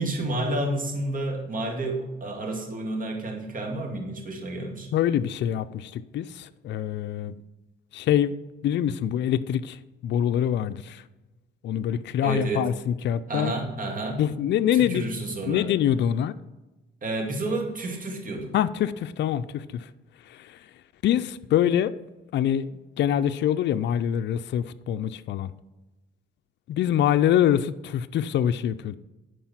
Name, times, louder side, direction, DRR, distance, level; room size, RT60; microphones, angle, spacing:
voice 1, 0.0-4.9 12.2-12.7 13.3-14.2 14.7-15.7 17.0-18.6, right 2 dB, 45° right, 2 dB, 2.3 m, -30 dB
voice 2, 4.9-7.4 7.9-8.3 8.6-11.0 11.6-13.5 14.2-15.1 15.5-16.3 18.5-19.9 20.3-20.6 21.0-21.9 22.3-25.5 26.7-29.0, left 10 dB, 65° left, 11 dB, 0.4 m, -25 dB
10.0 x 4.8 x 5.9 m, 1.1 s
cardioid pair, 90°, 20 cm